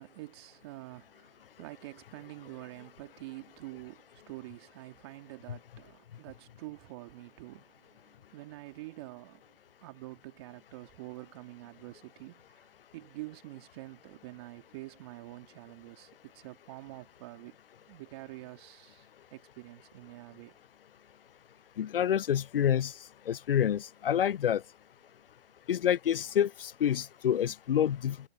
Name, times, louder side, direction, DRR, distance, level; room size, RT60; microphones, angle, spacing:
voice 1, 0.0-9.4 9.8-17.6 17.8-20.6, right 20 dB, 25° right, 2.1 m, -47 dB
voice 2, 21.8-22.9 23.3-24.6 25.7-28.2, left 9 dB, 65° left, 0.5 m, -27 dB
hypercardioid pair, 150°, 30 cm